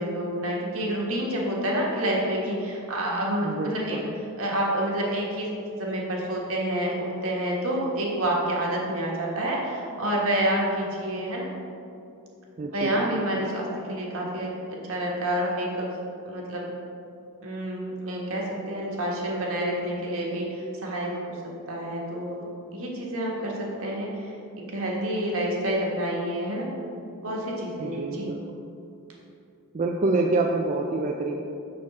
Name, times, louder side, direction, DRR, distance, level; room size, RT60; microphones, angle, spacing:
voice 1, 0.0-4.0 4.4-5.5 5.8-11.5 12.7-15.9 16.3-16.7 17.4-26.7 27.2-28.3, right 1 dB, 70° right, -3 dB, 1.4 m, -28 dB
voice 2, 3.4-4.1 12.6-13.2 27.8-28.4 29.7-31.4, right 2 dB, 35° right, 1 dB, 0.3 m, -27 dB
6.4 x 6.2 x 4.2 m, 2.6 s
head